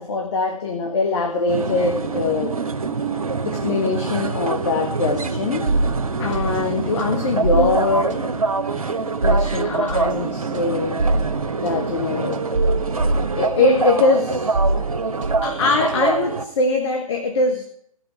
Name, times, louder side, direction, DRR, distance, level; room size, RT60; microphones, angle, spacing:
voice 1, 0.0-2.6 3.4-5.7 6.2-8.2 9.2-11.0 11.6-12.5 13.2-14.6 15.4-17.6, left 3 dB, 50° left, 4 dB, 1.4 m, -22 dB
sound 1, 1.5-16.4, right 4 dB, 80° right, 1.1 m, -25 dB
sound 2, 5.7-14.0 14.3-16.2, right 2 dB, 60° right, 1.5 m, -25 dB
16.5 x 6.0 x 5.8 m, 0.67 s
figure-of-eight pair, 130°, 18 cm